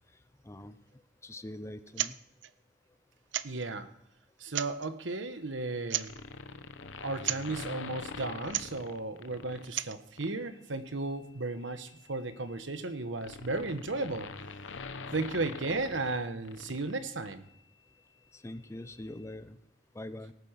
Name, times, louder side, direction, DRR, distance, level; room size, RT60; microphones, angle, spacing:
voice 1, 1.2-2.2 18.3-19.6 19.9-20.3, left 1 dB, 15° left, 12 dB, 0.6 m, -43 dB
sound 1, 1.9-2.2 2.4-2.5 3.3-3.7 4.4-4.9 5.9-6.2 7.2-7.5 8.4-8.8 9.6-10.0, right 12 dB, 70° right, 0.5 m, -34 dB
voice 2, 3.4-3.9 4.4-6.1 7.0-14.3 15.1-17.5, right 3 dB, 90° right, 10 dB, 1.2 m, -35 dB
sound 2, 6.0-9.7 10.2-10.4 11.6-17.0 17.2-17.3, left 4 dB, 85° left, 0.8 m, -44 dB
18.0 x 8.4 x 5.8 m, 0.76 s
head